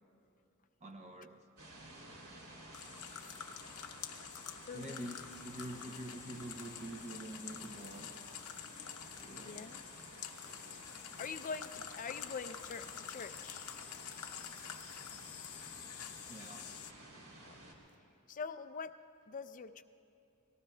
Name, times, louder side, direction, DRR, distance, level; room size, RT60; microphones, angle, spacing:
voice 1, 0.8-1.5 4.7-8.2 9.2-9.6 16.3-16.8, right 1 dB, 30° right, 0.6 m, -46 dB
sound 1, 1.6-17.7, right 1 dB, 70° right, 2.8 m, -54 dB
sound 2, 2.7-16.9, left 9 dB, 85° left, 0.7 m, -48 dB
voice 2, 4.6-5.2 9.4-9.8 11.2-13.8 17.4-17.6 18.3-19.0 19.3-19.8, left 5 dB, 35° left, 0.4 m, -44 dB
29.0 x 19.0 x 2.2 m
head